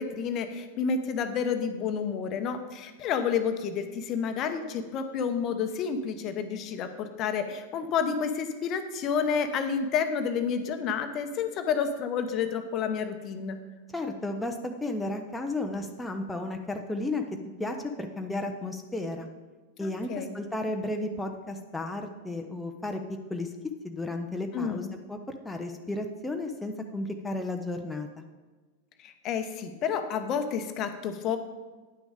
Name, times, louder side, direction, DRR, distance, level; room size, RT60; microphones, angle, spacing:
voice 1, 0.0-13.6 19.8-20.3 24.5-24.9 29.0-31.4, left 6 dB, 35° left, 8 dB, 0.8 m, -30 dB
voice 2, 13.9-17.2 17.6-19.3 19.8-23.0 23.3-23.5 23.8-28.1, left 2 dB, 5° left, 3 dB, 0.7 m, -33 dB
9.9 x 6.1 x 5.0 m, 1.3 s
figure-of-eight pair, 90°, 0 cm